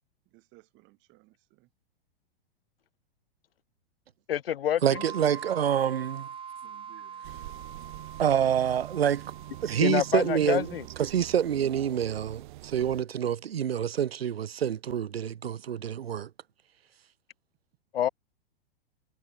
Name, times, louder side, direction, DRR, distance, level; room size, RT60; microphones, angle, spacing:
voice 1, 0.3-1.7 6.6-7.3, right 24 dB, 40° right, 2.5 m, -59 dB
voice 2, 4.3-4.8 9.8-10.8 17.9-18.1, left 10 dB, 75° left, 0.7 m, -27 dB
voice 3, 4.8-6.3 8.2-9.3 9.6-16.3, right 9 dB, 85° right, 0.6 m, -27 dB
sound 1, 4.9-11.5, right 7 dB, 20° right, 1.8 m, -44 dB
Tree Stereo, 7.2-13.0, right 17 dB, 55° right, 2.4 m, -44 dB
hypercardioid pair, 110°, 29 cm